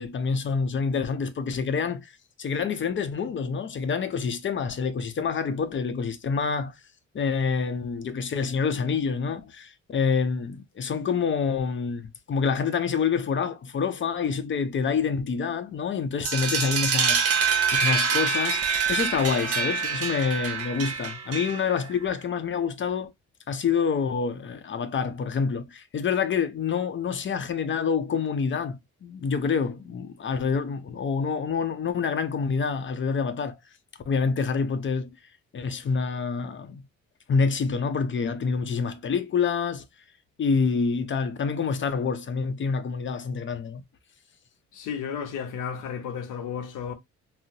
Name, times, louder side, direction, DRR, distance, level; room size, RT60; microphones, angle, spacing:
voice 1, 0.0-2.1 2.4-6.7 7.1-23.1 23.5-33.6 34.1-35.1 35.5-36.8 37.3-39.9 40.4-43.8, left 5 dB, 40° left, 0.6 m, -27 dB
sound 1, 16.2-21.8, right 5 dB, 50° right, 0.9 m, -25 dB
voice 2, 44.7-46.9, left 7 dB, 85° left, 0.8 m, -33 dB
3.7 x 2.0 x 2.6 m
cardioid pair, 90°, 30 cm